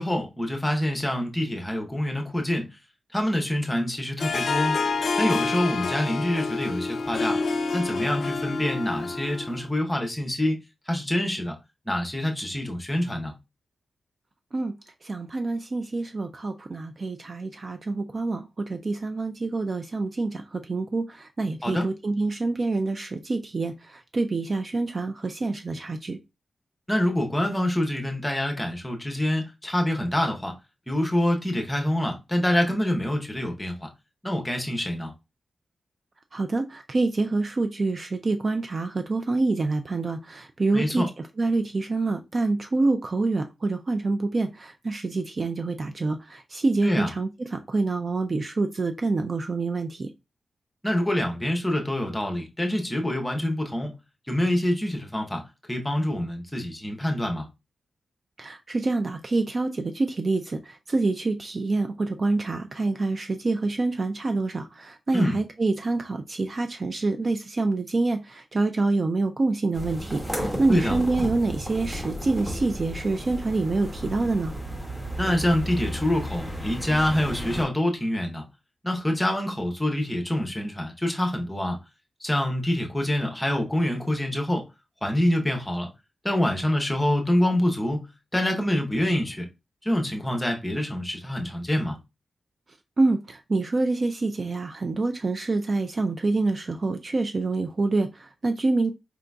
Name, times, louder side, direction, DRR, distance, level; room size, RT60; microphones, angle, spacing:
voice 1, 0.0-2.7 3.1-4.8 5.2-7.4 7.7-10.6 10.9-11.6 11.9-13.3 21.6-21.9 26.9-30.5 30.9-33.9 34.2-35.1 40.7-41.1 46.8-47.1 50.8-53.9 54.3-55.4 55.7-57.5 65.1-65.4 70.7-71.0 75.2-78.4 78.8-81.8 82.2-84.6 85.0-85.9 86.2-88.0 88.3-89.4 89.8-92.0, left 1 dB, 10° left, 0.7 m, -26 dB
Harp, 4.2-9.7, left 4 dB, 55° left, 0.5 m, -28 dB
voice 2, 15.0-26.2 36.3-41.0 41.4-50.1 58.4-74.5 93.0-98.9, right 3 dB, 35° right, 0.3 m, -26 dB
sound 1, 69.7-77.6, equal, 10° right, 1.1 m, -33 dB
4.6 x 3.8 x 2.2 m
wide cardioid pair, 170°, 0 cm